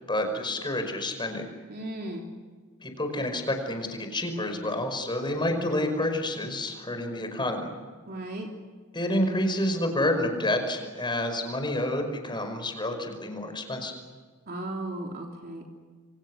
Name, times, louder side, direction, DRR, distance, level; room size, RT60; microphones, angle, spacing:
voice 1, 0.1-1.5 2.8-7.7 8.9-13.9, left 1 dB, 20° left, 6 dB, 5.3 m, -29 dB
voice 2, 1.7-2.2 8.1-8.5 14.5-15.7, right 1 dB, 50° right, 0 dB, 3.3 m, -36 dB
27.5 x 26.0 x 6.4 m, 1.5 s
head